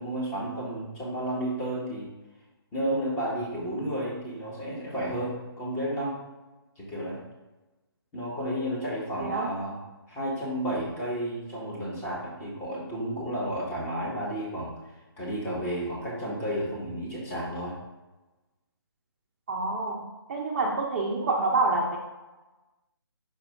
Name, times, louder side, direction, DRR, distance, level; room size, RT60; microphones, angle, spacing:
voice 1, 0.0-2.1 2.7-6.2 6.8-7.2 8.1-9.8 10.1-14.7 15.2-17.8, right 1 dB, 15° left, -5 dB, 1.6 m, -32 dB
voice 2, 9.2-9.5 19.5-22.0, right 3 dB, 30° right, 0 dB, 0.6 m, -27 dB
5.3 x 4.6 x 3.8 m, 1.1 s
figure-of-eight pair, 155°, 14 cm